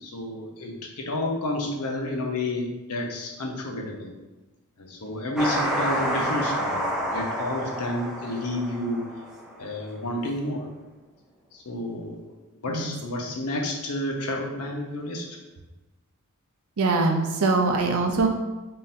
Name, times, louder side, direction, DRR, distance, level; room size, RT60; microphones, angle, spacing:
voice 1, 0.0-4.1 4.8-9.0 9.6-10.7 11.5-12.2 12.6-15.2, left 1 dB, 85° left, 1 dB, 0.8 m, -30 dB
sound 1, 5.4-9.6, equal, 5° right, 0.4 m, -29 dB
voice 2, 16.8-18.3, right 3 dB, 75° right, 3 dB, 0.6 m, -22 dB
4.1 x 3.7 x 2.6 m, 1.1 s
head